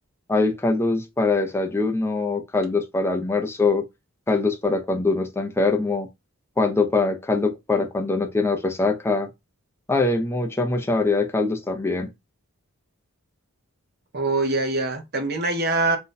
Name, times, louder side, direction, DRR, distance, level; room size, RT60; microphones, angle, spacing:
voice 1, 0.3-3.8 4.3-6.1 6.6-9.3 9.9-12.1, left 3 dB, 10° left, 0.4 m, -23 dB
voice 2, 14.1-16.0, right 2 dB, 45° right, 0.7 m, -23 dB
2.6 x 2.1 x 3.9 m
head